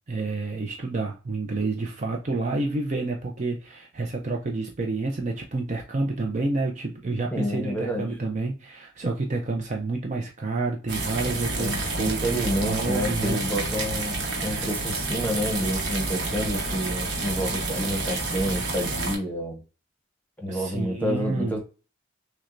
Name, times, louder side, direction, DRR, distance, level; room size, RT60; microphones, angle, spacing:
voice 1, 0.1-13.4 20.5-21.6, right 3 dB, 40° right, 1 dB, 0.5 m, -29 dB
voice 2, 7.3-8.1 11.3-19.6 20.4-21.6, equal, 10° left, 2 dB, 0.9 m, -29 dB
sound 1, 10.9-19.1, right 3 dB, 65° right, 1.0 m, -29 dB
6.0 x 2.2 x 2.5 m, 0.33 s
head